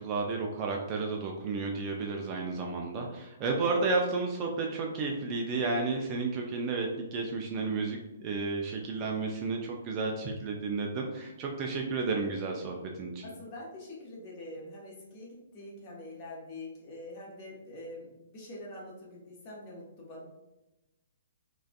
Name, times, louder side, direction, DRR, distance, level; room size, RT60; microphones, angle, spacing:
voice 1, 0.0-13.2, right 3 dB, 25° right, 1 dB, 0.3 m, -32 dB
voice 2, 13.2-20.2, left 1 dB, 35° left, -4 dB, 0.8 m, -45 dB
2.4 x 2.3 x 2.3 m, 1.0 s
figure-of-eight pair, 125°, 0 cm